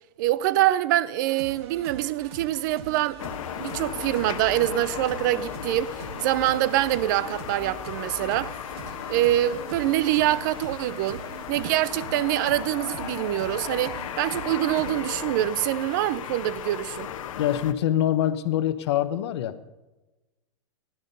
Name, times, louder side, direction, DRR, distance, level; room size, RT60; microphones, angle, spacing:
voice 1, 0.2-3.3 3.6-8.5 9.1-11.2 11.5-17.1, right 14 dB, 35° right, 0.5 m, -25 dB
sound 1, 1.2-15.3, right 6 dB, 50° right, 1.9 m, -43 dB
sound 2, 3.2-17.7, left 9 dB, 80° left, 1.1 m, -36 dB
voice 2, 17.4-19.5, left 11 dB, 55° left, 1.0 m, -24 dB
16.5 x 12.0 x 5.4 m
supercardioid pair, 170°, 17 cm